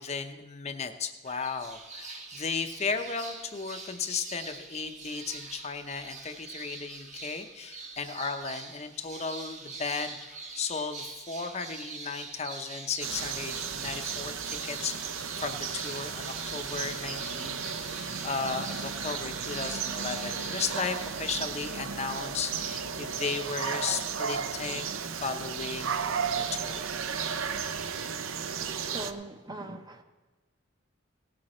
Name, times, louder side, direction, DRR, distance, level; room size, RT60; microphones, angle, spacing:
voice 1, 0.0-26.9, left 5 dB, 30° left, 7 dB, 0.6 m, -35 dB
sound 1, 1.3-21.2, right 3 dB, 35° right, 1.1 m, -43 dB
sound 2, 13.0-29.1, right 6 dB, 80° right, 0.6 m, -34 dB
voice 2, 28.8-30.0, right 2 dB, 20° right, 6 dB, 0.6 m, -41 dB
17.5 x 7.7 x 4.3 m, 1.3 s
head